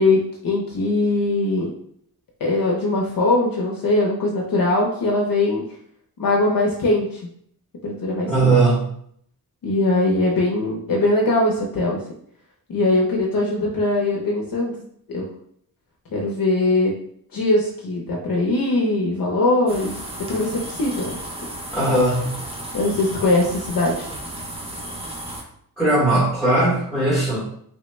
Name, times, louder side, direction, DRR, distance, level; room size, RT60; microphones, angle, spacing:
voice 1, 0.0-1.7 2.4-5.6 6.2-7.2 7.8-8.5 9.6-12.0 12.7-14.8 15.1-15.3 16.1-16.9 17.3-19.9 20.2-21.1 22.7-24.1, left 2 dB, 65° left, -2 dB, 0.6 m, -21 dB
voice 2, 8.3-8.9 21.7-22.4 25.8-27.4, right 2 dB, ahead, -8 dB, 0.9 m, -18 dB
sound 1, 19.7-25.4, right 1 dB, 15° right, 0.5 m, -34 dB
3.2 x 2.1 x 3.1 m, 0.66 s
wide cardioid pair, 120°, 37 cm